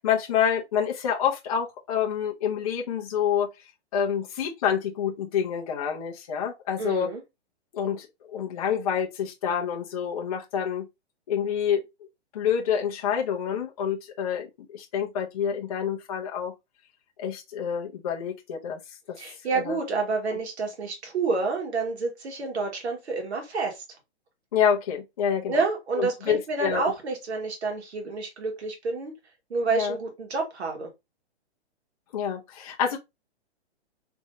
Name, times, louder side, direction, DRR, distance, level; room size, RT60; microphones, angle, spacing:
voice 1, 0.0-3.5 3.9-7.1 7.7-10.9 11.3-11.8 12.3-16.5 17.2-18.8 19.1-19.2 19.7-19.8 24.5-25.6 26.0-26.8 29.7-30.0 32.1-33.0, left 8 dB, 35° left, 0.7 m, -27 dB
voice 2, 6.8-7.2 19.2-23.8 25.5-29.1 29.5-30.9, right 4 dB, 75° right, 1.8 m, -29 dB
3.5 x 3.2 x 2.7 m
hypercardioid pair, 165°, 33 cm